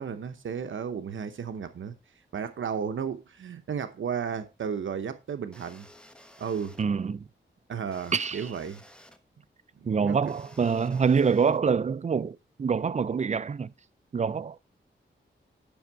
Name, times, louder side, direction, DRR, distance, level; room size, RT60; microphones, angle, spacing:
voice 1, 0.0-1.9 2.3-5.9 6.4-6.8 7.7-8.8 9.7-10.3, right 7 dB, 75° right, 0.9 m, -34 dB
sound 1, 5.5-6.8 7.9-9.2 10.3-11.6, equal, 5° left, 1.1 m, -53 dB
voice 2, 6.8-7.2 8.1-8.5 9.8-13.7 14.1-14.6, right 6 dB, 35° right, 0.4 m, -26 dB
10.5 x 6.2 x 4.6 m
wide cardioid pair, 120°, 20 cm